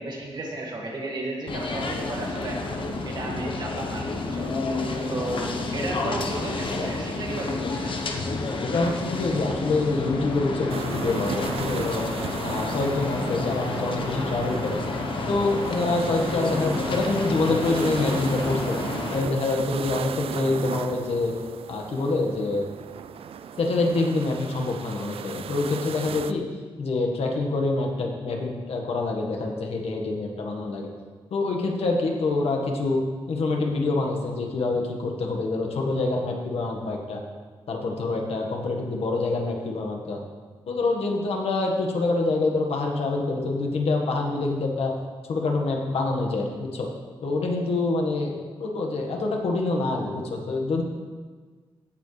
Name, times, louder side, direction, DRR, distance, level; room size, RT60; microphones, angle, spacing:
voice 1, 0.0-2.6 3.0-4.5 5.1-8.0, right 2 dB, 45° right, -2 dB, 1.9 m, -33 dB
sound 1, 1.5-19.2, left 3 dB, 60° left, 1.0 m, -30 dB
voice 2, 8.6-12.0 12.4-14.8 15.3-18.8 19.1-21.3 21.7-22.7 23.6-26.4 26.8-30.9 31.3-33.0 33.3-37.2 37.7-40.2 40.7-44.9 45.3-46.9 47.2-50.8, left 3 dB, 85° left, 1 dB, 1.5 m, -26 dB
sound 2, 10.7-26.3, right 8 dB, 75° right, 0.4 m, -36 dB
16.0 x 7.2 x 3.3 m, 1.5 s
wide cardioid pair, 170°, 10 cm